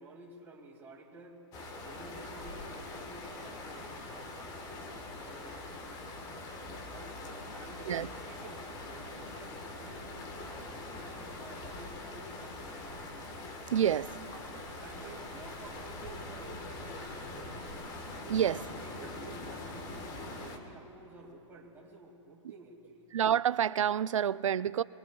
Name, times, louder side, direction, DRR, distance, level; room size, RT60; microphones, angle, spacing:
voice 1, 0.0-1.4 1.8-4.8 5.2-5.6 6.9-13.0 14.7-17.6 18.2-23.1, right 3 dB, 15° right, 2.3 m, -52 dB
sound 1, 1.5-20.6, left 2 dB, 25° left, 1.3 m, -43 dB
voice 2, 13.7-14.2 18.3-18.6 23.1-24.8, right 9 dB, 90° right, 0.4 m, -28 dB
24.0 x 20.5 x 2.3 m
hypercardioid pair, 140°, 16 cm